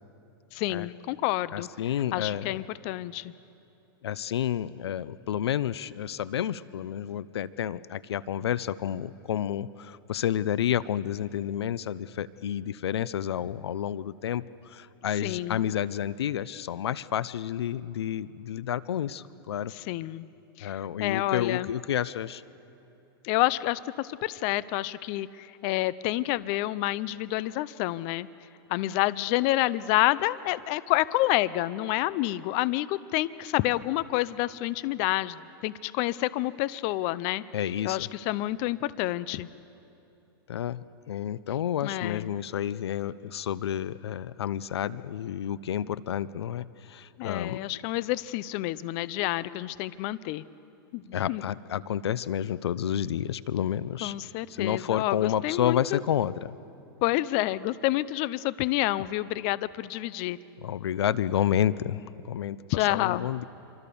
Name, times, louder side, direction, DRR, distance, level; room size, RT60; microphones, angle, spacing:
voice 1, 0.5-1.7 2.1-3.3 15.2-15.6 19.9-20.3 20.6-20.7 21.0-21.7 23.2-28.3 28.7-37.4 37.8-39.5 41.8-42.3 47.2-50.4 50.9-51.0 51.3-51.4 54.0-56.0 57.0-60.4 62.7-63.3, left 17 dB, 45° left, 18 dB, 0.6 m, -28 dB
voice 2, 1.5-2.6 4.0-19.7 20.6-22.4 37.5-38.1 40.5-47.6 51.1-54.1 54.5-56.6 60.6-63.4, left 10 dB, 85° left, 18 dB, 0.6 m, -30 dB
26.5 x 24.5 x 7.0 m, 2.8 s
hypercardioid pair, 135°, 13 cm